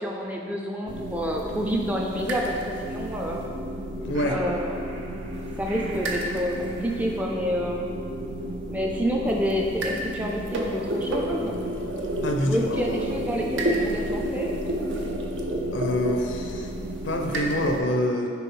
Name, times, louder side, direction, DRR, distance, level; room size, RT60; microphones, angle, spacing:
voice 1, 0.0-2.6 2.8-3.4 4.3-5.0 5.6-7.9 8.7-11.6 12.5-14.5, equal, 10° right, 0 dB, 0.4 m, -28 dB
sound 1, 0.9-17.8, right 1 dB, 75° right, 0.6 m, -31 dB
voice 2, 4.0-4.4 12.2-13.4 15.7-16.7 17.0-18.3, left 1 dB, 80° left, 2 dB, 0.6 m, -26 dB
4.6 x 4.0 x 5.3 m, 2.4 s
head